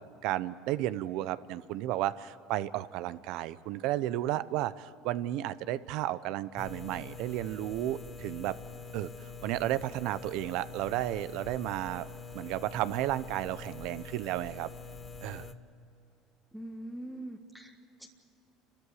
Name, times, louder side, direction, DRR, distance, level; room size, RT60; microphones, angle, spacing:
voice 1, 0.0-8.5 8.9-12.1 12.3-14.7 15.2-15.5, right 14 dB, 70° right, 15 dB, 0.8 m, -33 dB
sound 1, 6.6-15.5, left 4 dB, 25° left, 1.2 m, -45 dB
voice 2, 16.5-18.1, right 1 dB, 5° right, 2 dB, 1.5 m, -43 dB
29.0 x 13.0 x 9.8 m, 2.9 s
supercardioid pair, 110°, 0 cm